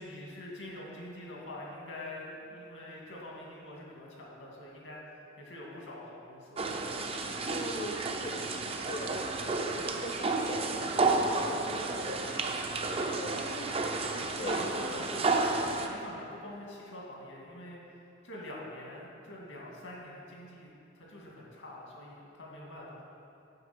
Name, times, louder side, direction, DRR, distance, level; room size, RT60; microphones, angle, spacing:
voice 1, 0.0-6.7 14.4-17.8 18.2-20.7 20.9-23.0, left 1 dB, 80° left, -3 dB, 2.1 m, -45 dB
sound 1, 6.6-15.9, right 3 dB, 30° right, 0.6 m, -31 dB
voice 2, 7.5-14.6, left 1 dB, 40° left, -1 dB, 0.6 m, -43 dB
7.9 x 5.9 x 5.9 m, 2.7 s
head